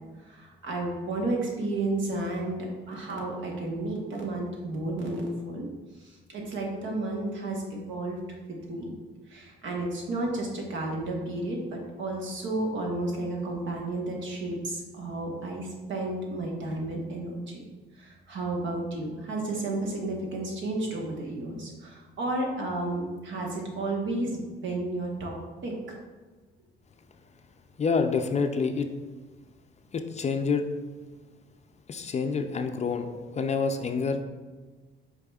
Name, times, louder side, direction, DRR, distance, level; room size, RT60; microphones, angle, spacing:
voice 1, 0.2-5.7 6.0-8.2 8.7-8.9 9.3-17.6 18.0-26.0, right 2 dB, 70° right, -1 dB, 1.2 m, -32 dB
voice 2, 27.8-28.9 29.9-30.6 31.9-34.2, left 5 dB, 35° left, 6 dB, 0.4 m, -27 dB
4.8 x 4.7 x 2.3 m, 1.3 s
cardioid pair, 90°, 20 cm